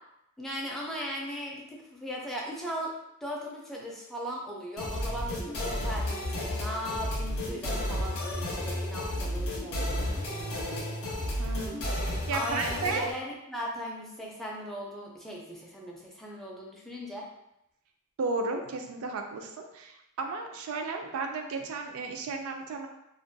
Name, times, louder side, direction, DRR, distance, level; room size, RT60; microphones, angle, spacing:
voice 1, 0.4-2.9 3.2-11.2 12.3-17.3, equal, ahead, -3 dB, 0.3 m, -38 dB
sound 1, 4.8-13.1, left 1 dB, 80° left, 0.6 m, -32 dB
voice 2, 11.4-13.1 18.2-22.9, right 3 dB, 75° right, 4 dB, 0.3 m, -34 dB
2.4 x 2.1 x 2.6 m, 0.84 s
head